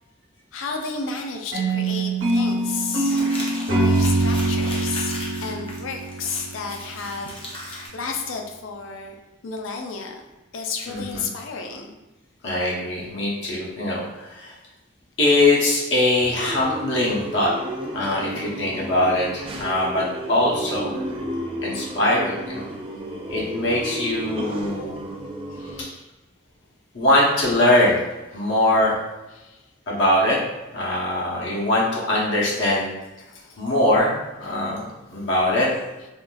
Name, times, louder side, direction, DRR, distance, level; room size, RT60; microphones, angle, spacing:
voice 1, 0.5-3.2 3.7-5.2 5.4-9.1 9.4-10.2 10.5-11.9 25.5-26.1 28.3-28.5 29.3-29.6 33.3-33.6, left 4 dB, 80° left, 3 dB, 0.5 m, -32 dB
sound 1, 1.5-6.6, right 2 dB, 65° right, 0.9 m, -23 dB
Crumpling crinkling, 2.3-7.9, left 1 dB, 25° left, 0.6 m, -37 dB
voice 2, 10.9-11.2 12.4-14.5 15.2-17.5 17.9-21.0 21.6-22.6 23.3-24.9 26.9-28.0 28.3-29.0 29.9-30.4 30.7-32.9 33.6-34.1 34.4-35.7, left 1 dB, 60° left, -5 dB, 0.9 m, -22 dB
sound 2, 16.2-25.8, right 1 dB, 25° right, 0.3 m, -33 dB
3.5 x 2.5 x 2.3 m, 1.1 s
head